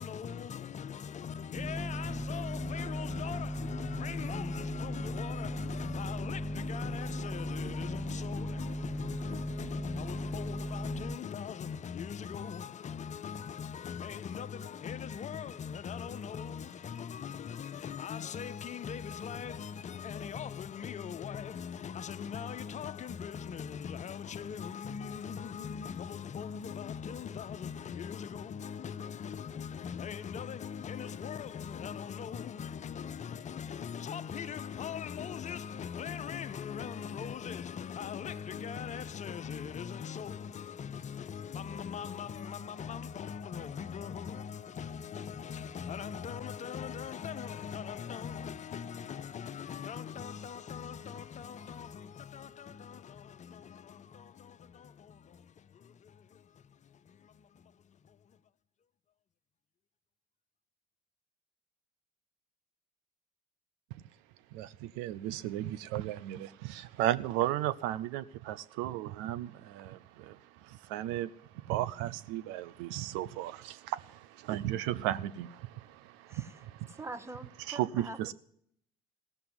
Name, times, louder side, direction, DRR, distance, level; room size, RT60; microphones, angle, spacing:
voice 1, 0.0-58.4, left 7 dB, 40° left, 0.6 m, -40 dB
sound 1, 1.5-11.2, equal, 5° left, 0.4 m, -37 dB
voice 2, 64.5-71.3 71.7-77.0 77.7-78.3, right 13 dB, 75° right, 0.5 m, -35 dB
voice 3, 76.3-78.3, right 2 dB, 15° right, 1.0 m, -45 dB
16.0 x 6.9 x 7.9 m
hypercardioid pair, 70°, 19 cm